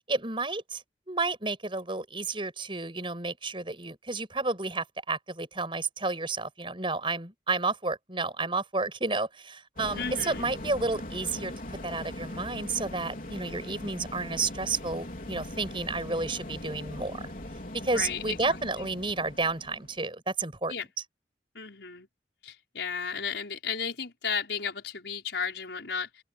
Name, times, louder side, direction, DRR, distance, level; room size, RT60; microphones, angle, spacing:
voice 1, 0.1-17.3 17.7-20.7, right 3 dB, 30° right, 6.6 m, -31 dB
sound 1, 9.8-20.0, left 1 dB, 50° left, 4.2 m, -40 dB
voice 2, 10.0-10.5 17.9-18.9 20.7-20.9 21.5-22.1 22.4-26.2, left 6 dB, 80° left, 5.3 m, -34 dB
open air
head